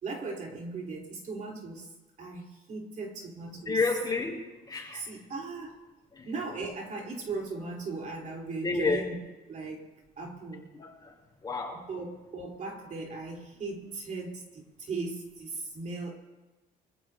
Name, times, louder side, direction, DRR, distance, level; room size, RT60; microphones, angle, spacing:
voice 1, 0.0-1.9 2.2-3.8 4.9-5.8 6.2-9.2 9.5-9.9 10.2-10.7 11.9-16.1, right 3 dB, 50° right, -1 dB, 3.7 m, -38 dB
voice 2, 3.5-5.1 6.1-6.3 8.6-9.1 10.7-11.2 11.4-11.8, left 3 dB, 25° left, -1 dB, 4.4 m, -30 dB
25.5 x 15.0 x 2.8 m, 1.1 s
cardioid pair, 110°, 17 cm